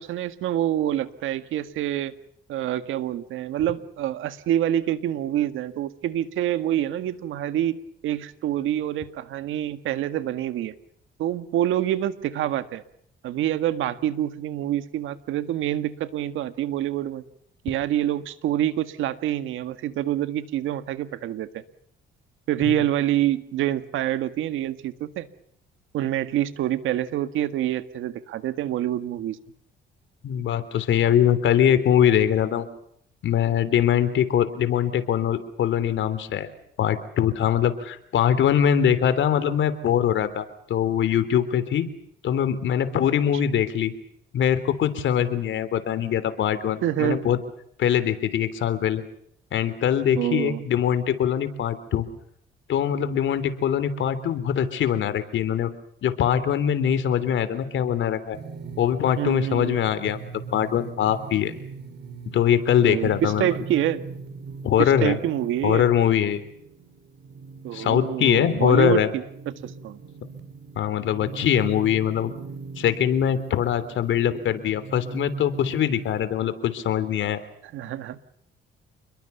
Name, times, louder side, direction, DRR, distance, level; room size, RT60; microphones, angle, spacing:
voice 1, 0.0-2.1 2.5-7.8 8.0-10.7 11.2-12.8 13.2-17.2 17.6-21.6 22.5-25.3 25.9-29.4 46.8-47.2 50.2-50.6 59.2-59.8 62.9-64.0 64.8-65.9 67.6-70.0 77.7-78.2, right 12 dB, 85° right, 11 dB, 1.9 m, -26 dB
voice 2, 30.2-32.7 33.2-36.5 36.8-41.9 42.2-43.9 44.3-47.4 47.8-49.0 49.5-52.1 52.7-55.7 56.0-58.4 58.8-60.2 60.5-61.5 62.3-63.5 64.6-65.2 65.6-66.4 67.7-69.1 70.8-72.3 72.8-77.4, left 9 dB, 75° left, 13 dB, 3.4 m, -22 dB
sound 1, 58.3-76.3, right 4 dB, 60° right, 4.1 m, -40 dB
29.0 x 22.0 x 7.0 m, 0.70 s
cardioid pair, 90°, 20 cm